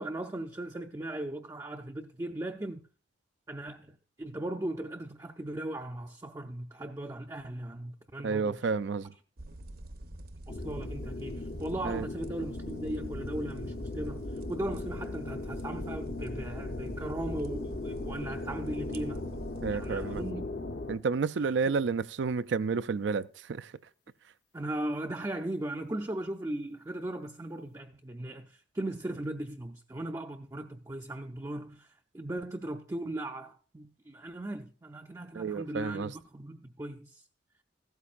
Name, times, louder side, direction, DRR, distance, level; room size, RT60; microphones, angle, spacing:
voice 1, 0.0-2.9 3.5-8.6 10.5-19.3 19.7-20.5 24.5-37.3, right 1 dB, 20° right, 0.5 m, -38 dB
voice 2, 8.2-9.1 11.8-12.1 19.6-20.2 20.9-23.7 35.3-36.1, right 5 dB, 80° right, 0.4 m, -30 dB
sound 1, 9.4-20.3, right 1 dB, 55° right, 0.9 m, -45 dB
sound 2, 10.5-21.0, left 2 dB, 55° left, 0.8 m, -38 dB
15.0 x 12.5 x 2.5 m
head